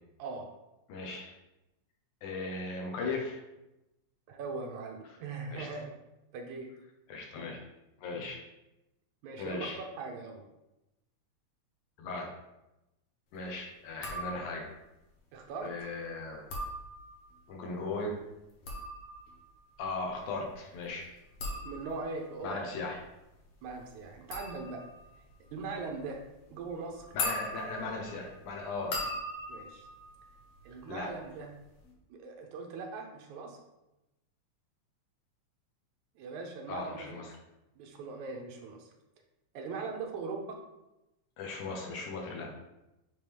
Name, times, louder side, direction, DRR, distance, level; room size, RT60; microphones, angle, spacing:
voice 1, 0.2-0.6 4.3-5.9 6.3-6.7 9.2-10.4 15.3-15.7 21.6-22.6 23.6-24.9 25.4-26.2 26.5-27.1 29.5-29.9 30.6-31.5 32.1-33.6 36.2-37.1 37.8-38.9 39.5-40.6, right 4 dB, 80° right, 2 dB, 2.2 m, -40 dB
voice 2, 0.9-1.3 2.2-3.4 5.5-5.7 7.1-7.6 8.0-8.4 9.4-9.8 12.0-12.3 13.3-14.7 15.6-16.4 17.5-18.2 19.8-21.1 22.4-23.0 27.1-29.0 30.9-31.1 36.7-37.3 41.4-42.5, left 3 dB, 85° left, 0 dB, 2.6 m, -37 dB
sound 1, 13.9-14.8 16.3-17.4 18.4-31.1 31.4-31.9, left 1 dB, 60° left, 2.0 m, -41 dB
8.4 x 3.7 x 3.4 m, 0.94 s
omnidirectional pair, 3.4 m